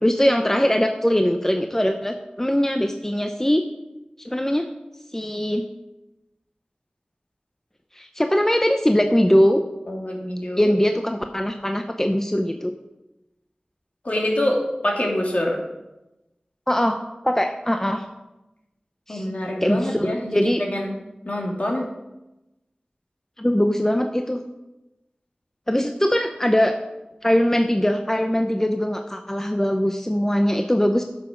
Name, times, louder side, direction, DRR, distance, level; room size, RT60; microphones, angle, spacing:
voice 1, 0.0-3.6 4.2-4.7 5.1-5.6 7.9-9.6 10.6-12.7 16.7-17.0 17.2-18.0 19.1-19.3 19.6-20.6 23.4-24.4 25.7-26.7 27.2-31.0, equal, 15° left, 6 dB, 0.7 m, -21 dB
voice 2, 9.9-10.7 14.0-14.6 14.8-15.6 19.1-20.9 21.2-21.9, left 1 dB, 55° left, -1 dB, 2.7 m, -25 dB
11.5 x 7.2 x 5.2 m, 0.98 s
wide cardioid pair, 40°, 3 cm